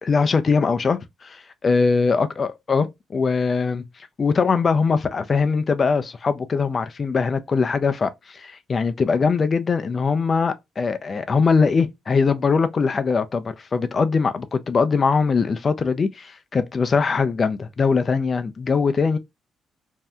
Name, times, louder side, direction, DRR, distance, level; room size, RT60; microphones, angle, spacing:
voice 1, 0.0-3.8 4.2-19.2, left 5 dB, 40° left, 0.4 m, -21 dB
2.7 x 2.2 x 3.4 m
cardioid pair, 90°, 0 cm